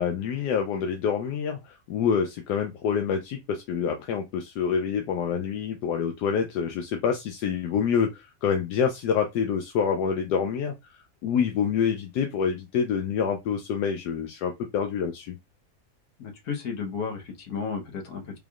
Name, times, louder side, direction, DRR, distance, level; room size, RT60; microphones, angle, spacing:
voice 1, 0.0-15.4, left 7 dB, 85° left, 1.2 m, -27 dB
voice 2, 16.2-18.4, left 5 dB, 65° left, 1.5 m, -33 dB
3.5 x 3.4 x 2.4 m
omnidirectional pair, 1.7 m